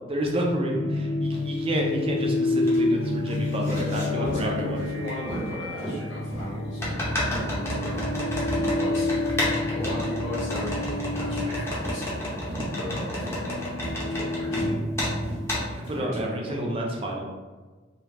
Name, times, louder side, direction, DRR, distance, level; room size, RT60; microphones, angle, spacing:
voice 1, 0.1-4.8 15.7-17.2, right 1 dB, 30° right, 0 dB, 0.4 m, -29 dB
sound 1, 0.7-15.8, left 2 dB, 90° right, 0.8 m, -29 dB
sound 2, 1.3-1.4 2.0-2.8 3.0-4.1 5.1-5.2 6.8-14.7 15.0-15.1 15.5-15.7, left 1 dB, 15° left, 0.7 m, -31 dB
sound 3, 3.7-3.9 4.2-4.4 4.7-4.9 5.3-5.4 5.8-5.9 6.3-6.5 6.8-7.0 7.3-7.5 7.9-8.1 8.5-8.7 9.1-9.3 9.8-10.0 10.5-10.7 11.2-11.4 11.8-12.0 12.5-12.7 13.1-13.3 13.8-14.0 14.5-14.8 15.2-15.4 15.8-16.0, equal, 40° left, 1.3 m, -35 dB
voice 2, 3.9-9.1 9.7-12.4 12.7-13.6 13.9-14.8 15.9-16.6, left 1 dB, 65° left, -6 dB, 1.2 m, -37 dB
3.4 x 2.3 x 2.8 m, 1.3 s
head